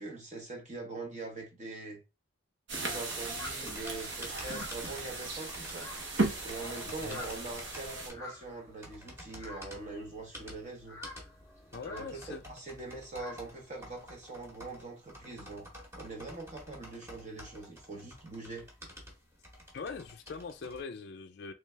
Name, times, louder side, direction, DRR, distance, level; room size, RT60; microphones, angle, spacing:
voice 1, 0.0-2.0 2.7-5.9 6.4-11.0 11.9-15.7 16.0-18.7, right 3 dB, 35° right, 0.8 m, -43 dB
sound 1, 2.7-8.1, right 2 dB, 60° right, 1.0 m, -36 dB
sound 2, 3.0-20.8, equal, 15° right, 1.0 m, -50 dB
sound 3, 3.4-14.0, left 2 dB, 15° left, 0.7 m, -50 dB
voice 2, 6.9-7.2 11.7-12.4 19.7-21.5, left 5 dB, 50° left, 0.4 m, -42 dB
3.3 x 3.2 x 3.3 m
head